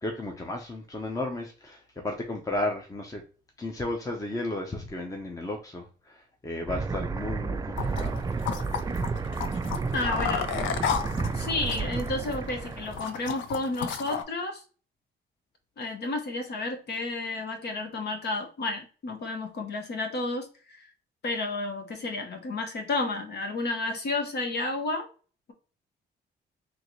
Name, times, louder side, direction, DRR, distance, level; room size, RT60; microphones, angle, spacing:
voice 1, 0.0-3.2 3.6-8.2, left 2 dB, 15° left, 2 dB, 0.8 m, -34 dB
sound 1, 6.7-13.1, right 4 dB, 20° right, 0.3 m, -31 dB
sound 2, 7.8-14.2, left 8 dB, 75° left, 0.6 m, -34 dB
voice 2, 9.9-10.5 11.3-14.6 15.8-20.9 21.2-25.1, left 2 dB, 55° left, 4 dB, 1.1 m, -31 dB
3.8 x 2.9 x 3.1 m, 0.37 s
cardioid pair, 90°, 20 cm